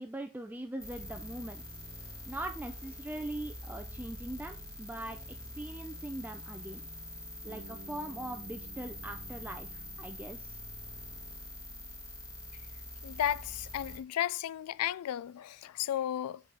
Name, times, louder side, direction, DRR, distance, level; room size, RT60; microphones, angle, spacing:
voice 1, 0.0-1.6 2.3-6.8 7.4-10.6, right 1 dB, 10° right, 0.4 m, -41 dB
sound 1, 0.8-14.0, left 1 dB, 15° left, 2.0 m, -45 dB
Bass guitar, 7.5-11.4, right 3 dB, 35° right, 0.9 m, -55 dB
voice 2, 13.0-16.4, left 11 dB, 90° left, 0.3 m, -34 dB
8.3 x 4.0 x 4.2 m
head